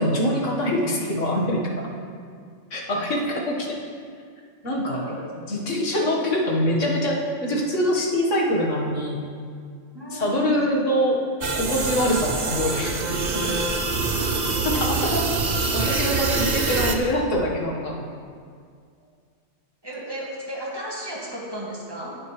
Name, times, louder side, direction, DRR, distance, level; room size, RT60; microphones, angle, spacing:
voice 1, 0.0-1.9 2.7-3.8 4.6-5.1 5.5-9.2 10.1-11.2 11.5-13.0 13.3-13.5 14.6-15.3 15.7-18.1, equal, 85° left, -2 dB, 2.0 m, -24 dB
voice 2, 4.9-5.3 6.0-6.2 9.9-10.7 19.8-22.2, right 1 dB, 20° right, -4 dB, 2.0 m, -34 dB
sound 1, 11.4-17.0, right 3 dB, 40° right, 0.8 m, -25 dB
18.5 x 6.6 x 3.3 m, 2.1 s
omnidirectional pair, 1.2 m